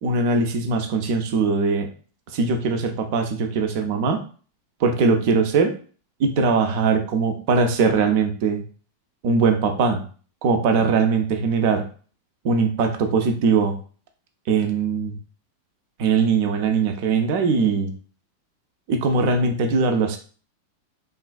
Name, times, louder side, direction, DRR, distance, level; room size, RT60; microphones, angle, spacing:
voice 1, 0.0-1.9 2.3-4.2 4.8-5.7 6.2-8.6 9.2-10.0 10.4-11.8 12.4-13.7 14.5-15.1 16.0-17.9 18.9-20.2, right 4 dB, 45° right, 6 dB, 0.5 m, -21 dB
3.1 x 2.3 x 2.3 m, 0.40 s
figure-of-eight pair, 90°, 0 cm